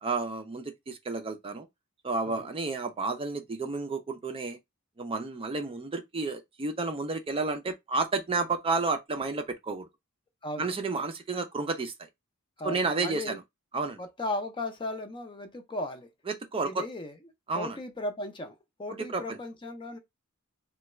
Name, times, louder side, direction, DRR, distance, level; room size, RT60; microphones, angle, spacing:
voice 1, 0.0-1.7 2.0-4.6 5.0-9.9 10.6-12.1 12.6-13.4 13.7-14.0 16.3-16.9 17.5-17.8 19.0-19.4, right 3 dB, 25° right, 0.4 m, -31 dB
voice 2, 10.4-10.7 12.6-13.4 14.0-16.1 16.6-17.2 17.5-20.0, left 1 dB, 20° left, 0.5 m, -36 dB
3.4 x 2.3 x 3.0 m
head